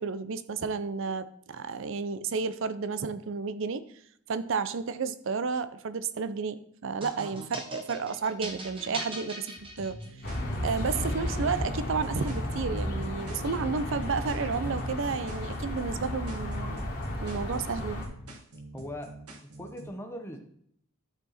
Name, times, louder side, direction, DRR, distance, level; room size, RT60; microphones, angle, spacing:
voice 1, 0.0-3.8 4.3-10.0 10.6-16.8 17.2-18.1, right 5 dB, 55° right, 13 dB, 0.5 m, -32 dB
sound 1, 7.0-10.4, right 1 dB, 25° right, 1.3 m, -40 dB
sound 2, 9.6-19.9, right 1 dB, 85° right, 1.7 m, -46 dB
sound 3, 10.2-18.1, left 1 dB, 45° left, 1.9 m, -33 dB
voice 2, 18.7-19.2 19.6-20.4, left 1 dB, 10° left, 3 dB, 1.0 m, -40 dB
11.5 x 4.7 x 4.2 m, 0.67 s
head